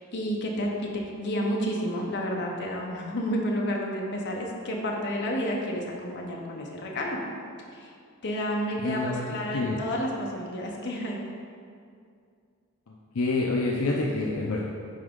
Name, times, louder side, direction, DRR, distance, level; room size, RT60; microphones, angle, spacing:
voice 1, 0.0-7.2 7.7-7.9 8.2-11.2, equal, 50° left, -1 dB, 1.0 m, -30 dB
voice 2, 8.8-9.8 13.1-14.6, left 2 dB, 70° left, -2 dB, 0.6 m, -27 dB
10.0 x 3.5 x 3.7 m, 2.3 s
head